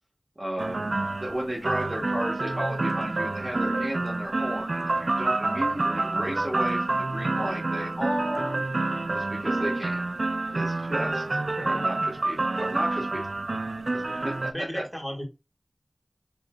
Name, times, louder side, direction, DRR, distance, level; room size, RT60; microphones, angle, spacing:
voice 1, 0.4-8.6 9.1-10.1 10.5-13.2 13.9-14.8, right 1 dB, 35° right, -3 dB, 1.3 m, -34 dB
sound 1, 0.6-14.5, right 2 dB, 75° right, 0.4 m, -28 dB
voice 2, 9.4-9.7 11.6-11.9 14.0-15.2, equal, ahead, -1 dB, 1.8 m, -37 dB
4.9 x 3.1 x 2.3 m, 0.26 s
wide cardioid pair, 40°, 0 cm